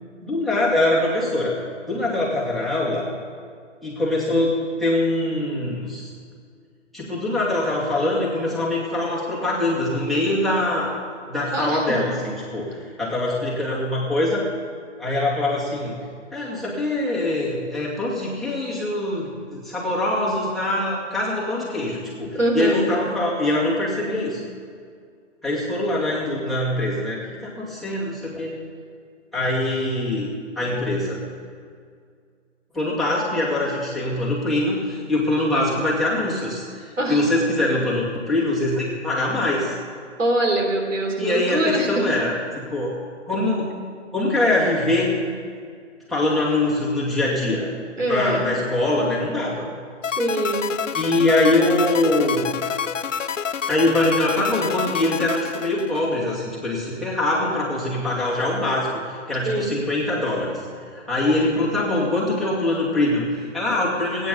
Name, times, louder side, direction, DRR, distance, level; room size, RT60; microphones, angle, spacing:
voice 1, 0.2-1.6 1.9-3.0 3.8-6.1 6.9-10.9 11.3-14.5 15.0-16.0 16.3-24.4 25.4-28.5 29.3-30.3 30.6-31.2 32.7-39.7 41.2-42.9 43.3-43.7 44.1-45.2 46.1-47.7 48.1-49.6 50.9-52.6 53.7-60.5 60.9-64.3, left 1 dB, ahead, -6 dB, 2.3 m, -23 dB
voice 2, 11.5-11.9 22.3-22.9 37.0-37.2 40.2-42.0 48.0-48.6 50.0-50.7 59.4-59.8, right 1 dB, 85° right, 1 dB, 3.7 m, -23 dB
sound 1, 50.0-56.3, left 7 dB, 85° left, 0.7 m, -28 dB
17.5 x 9.5 x 6.9 m, 2.1 s
figure-of-eight pair, 140°, 37 cm